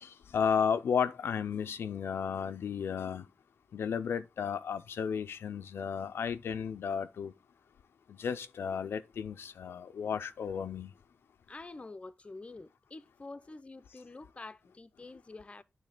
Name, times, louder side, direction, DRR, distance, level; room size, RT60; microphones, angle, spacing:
voice 1, 0.0-3.2 3.7-7.3 8.1-10.9, left 7 dB, 85° left, 0.5 m, -33 dB
voice 2, 11.5-15.6, left 3 dB, 30° left, 0.6 m, -47 dB
9.0 x 3.3 x 4.9 m
cardioid pair, 65°, 4 cm